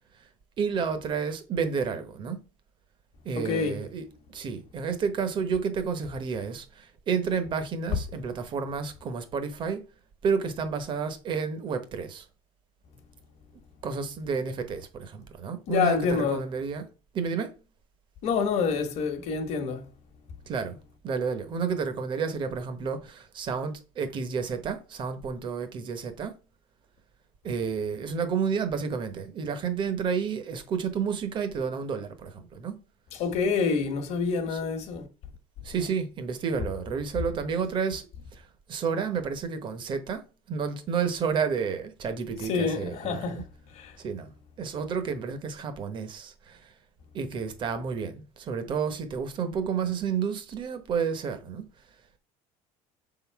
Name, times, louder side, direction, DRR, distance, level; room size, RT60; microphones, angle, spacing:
voice 1, 0.6-2.4 3.2-4.0 4.3-9.8 10.2-12.3 13.8-16.9 17.1-17.5 20.5-20.8 21.0-26.3 27.4-32.7 34.5-34.6 35.6-38.1 38.3-43.4 44.0-44.3 44.6-46.7 47.1-51.6, right 6 dB, 35° right, 0.9 m, -30 dB
voice 2, 3.3-3.8 15.7-16.5 18.2-19.9 33.1-35.1 42.5-43.5 43.7-44.0, left 5 dB, 50° left, 1.2 m, -27 dB
6.5 x 3.8 x 4.5 m
cardioid pair, 160°, 14 cm